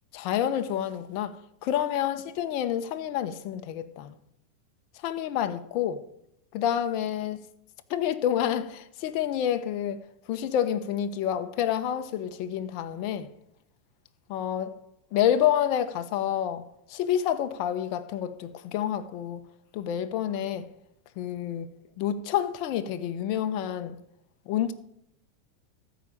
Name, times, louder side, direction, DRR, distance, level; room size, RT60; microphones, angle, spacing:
voice 1, 0.1-1.4 1.6-4.1 5.0-6.0 6.5-7.4 7.9-10.0 10.3-13.3 14.3-14.7 15.1-19.4 19.7-20.7 21.2-21.7 22.0-24.0 24.5-24.7, left 10 dB, 55° left, 1.0 m, -28 dB
14.0 x 5.1 x 9.0 m
hypercardioid pair, 100°, 0 cm